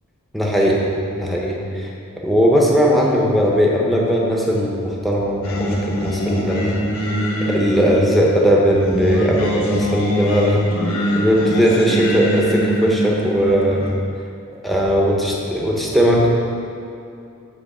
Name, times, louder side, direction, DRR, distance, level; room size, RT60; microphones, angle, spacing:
voice 1, 0.3-0.8 1.1-1.9 2.2-6.8 7.5-10.7 11.1-13.9 14.6-16.3, equal, ahead, -3 dB, 0.9 m, -18 dB
Singing, 5.4-13.9, equal, 75° left, 1.2 m, -23 dB
7.9 x 3.8 x 6.1 m, 2.7 s
head